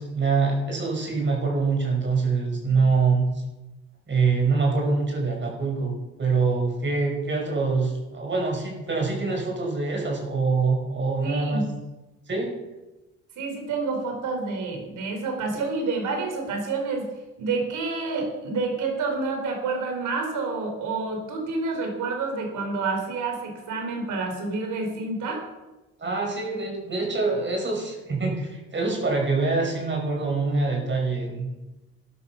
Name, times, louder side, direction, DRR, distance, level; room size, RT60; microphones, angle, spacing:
voice 1, 0.0-3.3 4.1-11.6 12.3-12.5 26.0-31.7, right 4 dB, 40° right, 0 dB, 5.5 m, -25 dB
voice 2, 11.2-11.6 13.4-17.1 17.4-25.4, right 3 dB, 80° right, 3 dB, 4.8 m, -28 dB
13.5 x 11.5 x 5.9 m, 1.1 s
cardioid pair, 90°, 30 cm